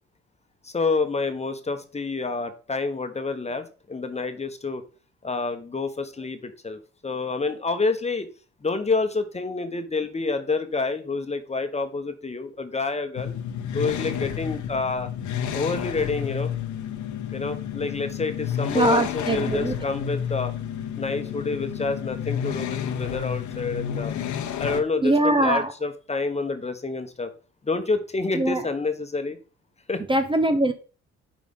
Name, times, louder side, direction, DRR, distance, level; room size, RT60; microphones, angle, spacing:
voice 1, 0.6-4.8 5.2-8.3 8.6-13.3 13.7-15.1 15.5-16.5 17.3-20.5 20.9-24.1 24.6-27.3 27.6-29.4 29.9-30.0, left 3 dB, 20° left, 8 dB, 1.1 m, -28 dB
sound 1, 13.2-24.8, left 9 dB, 75° left, 0.9 m, -30 dB
voice 2, 18.7-19.8 25.0-25.7 28.3-28.6 30.1-30.7, right 1 dB, 15° right, 7 dB, 0.6 m, -22 dB
9.1 x 5.1 x 3.7 m, 0.36 s
cardioid pair, 90°, 30 cm